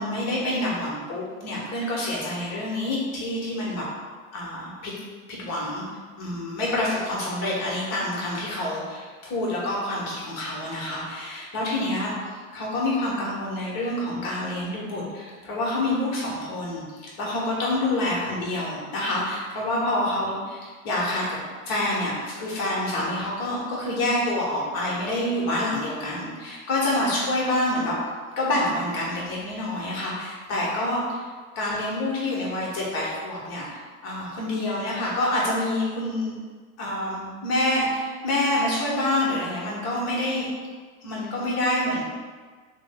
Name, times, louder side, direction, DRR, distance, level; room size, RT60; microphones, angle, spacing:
voice 1, 0.0-3.8 4.3-4.9 5.3-5.8 6.1-21.4 21.7-28.0 28.4-31.3 31.5-36.4 36.8-40.5 41.0-42.0, left 1 dB, 40° left, -5 dB, 1.2 m, -27 dB
3.2 x 2.2 x 3.5 m, 1.5 s
hypercardioid pair, 105°, 42 cm